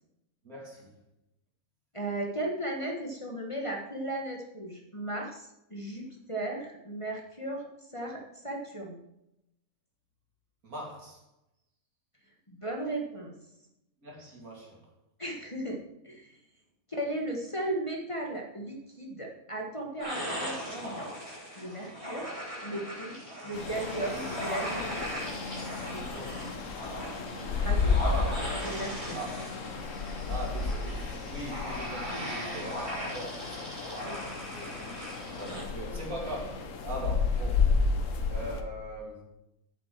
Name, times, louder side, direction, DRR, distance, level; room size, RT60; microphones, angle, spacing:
voice 1, 0.4-0.9 10.6-11.2 14.0-14.8 25.8-26.5 29.1-29.4 30.3-34.9 35.3-37.7 38.3-39.2, right 1 dB, 70° right, 3.3 m, -41 dB
voice 2, 1.9-7.6 7.9-8.2 8.4-9.0 12.5-13.3 15.2-15.8 16.0-16.3 16.9-22.3 22.6-23.2 23.4-25.1 27.6-27.9 28.6-29.2 34.0-34.1 35.5-35.6, right 1 dB, 20° left, 1.5 m, -36 dB
sound 1, 20.0-35.6, equal, 20° right, 3.8 m, -38 dB
sound 2, 23.5-38.6, left 4 dB, 60° left, 1.3 m, -32 dB
8.8 x 7.6 x 6.1 m
omnidirectional pair, 1.6 m